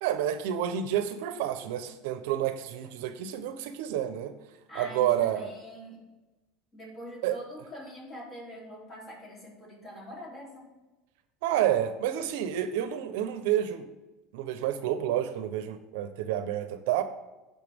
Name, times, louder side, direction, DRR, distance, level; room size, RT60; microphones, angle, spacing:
voice 1, 0.0-4.3 4.7-5.5 7.2-7.4 11.4-13.8 14.3-17.0, right 11 dB, 70° right, 10 dB, 0.9 m, -29 dB
voice 2, 4.7-6.0 6.7-10.7, equal, 20° left, -3 dB, 3.3 m, -44 dB
16.0 x 5.9 x 3.6 m, 1.1 s
cardioid pair, 165°, 0 cm